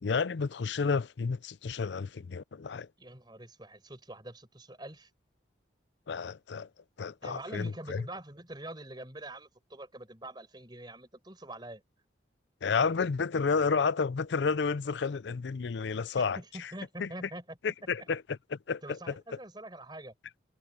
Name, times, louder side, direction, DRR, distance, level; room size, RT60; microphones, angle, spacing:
voice 1, 0.0-2.9 6.1-6.7 7.0-8.1 12.6-16.7 17.0-17.1 17.6-19.1, left 5 dB, 65° left, 0.5 m, -31 dB
voice 2, 3.0-5.1 7.2-11.8 16.2-18.1 18.8-20.1, right 1 dB, 25° right, 4.9 m, -45 dB
head